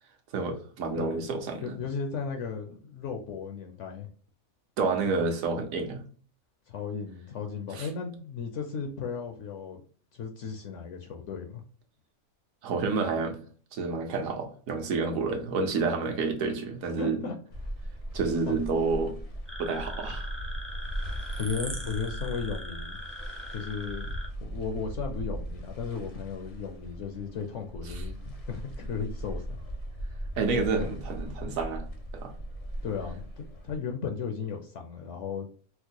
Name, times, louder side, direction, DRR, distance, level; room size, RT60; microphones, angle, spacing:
voice 1, 0.3-1.8 4.8-6.0 7.7-7.9 12.6-13.4 13.7-17.2 18.1-19.2 19.6-20.3 30.4-31.8 32.1-32.3, right 4 dB, 70° right, 4 dB, 1.2 m, -29 dB
voice 2, 1.6-4.1 6.7-9.8 10.1-11.6 17.0-17.3 18.5-18.6 21.4-23.0 23.5-29.6 30.7-30.9 32.8-35.5, left 6 dB, 65° left, 4 dB, 0.8 m, -35 dB
sound 1, 17.5-33.8, right 1 dB, 40° left, 0.5 m, -38 dB
sound 2, 19.5-24.3, equal, 15° right, 0.4 m, -41 dB
4.4 x 2.1 x 2.8 m, 0.43 s
omnidirectional pair, 1.5 m